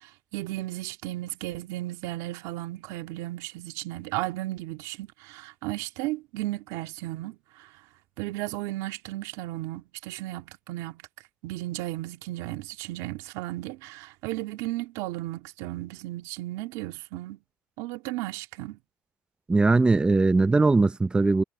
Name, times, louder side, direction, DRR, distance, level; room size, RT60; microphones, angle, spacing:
voice 1, 0.0-7.7 8.2-11.0 11.4-17.4 17.8-18.8, right 17 dB, 85° right, 2.4 m, -35 dB
voice 2, 19.5-21.4, right 3 dB, 15° right, 0.6 m, -20 dB
supercardioid pair, 95°, 6 cm